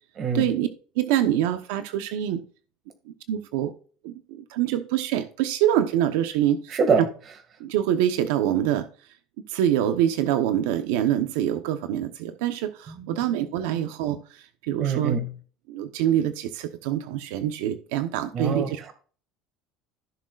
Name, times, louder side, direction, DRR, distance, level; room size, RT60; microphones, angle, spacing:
voice 1, 0.3-0.7 1.0-2.4 3.3-3.7 4.0-6.8 7.6-8.9 9.5-15.2 15.7-18.8, right 11 dB, 85° right, 9 dB, 0.9 m, -25 dB
voice 2, 6.7-7.0 12.9-13.1 14.8-15.3 18.3-18.7, right 5 dB, 35° right, 7 dB, 2.0 m, -24 dB
15.5 x 6.5 x 2.5 m, 0.40 s
cardioid pair, 155°, 0 cm